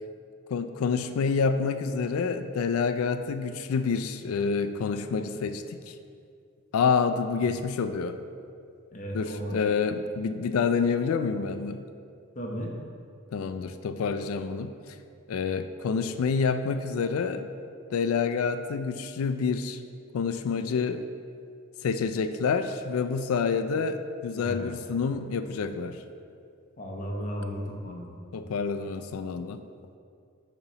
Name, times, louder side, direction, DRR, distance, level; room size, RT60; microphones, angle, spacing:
voice 1, 0.5-5.9 6.7-8.1 9.1-11.8 13.3-14.7 15.3-17.5 17.9-19.8 20.1-21.0 21.8-26.0 28.3-29.6, left 5 dB, 85° left, 9 dB, 0.3 m, -28 dB
voice 2, 8.9-9.6 12.3-12.7 24.3-24.7 26.8-28.2, equal, 35° left, -1 dB, 0.8 m, -35 dB
6.7 x 3.0 x 5.6 m, 2.3 s
head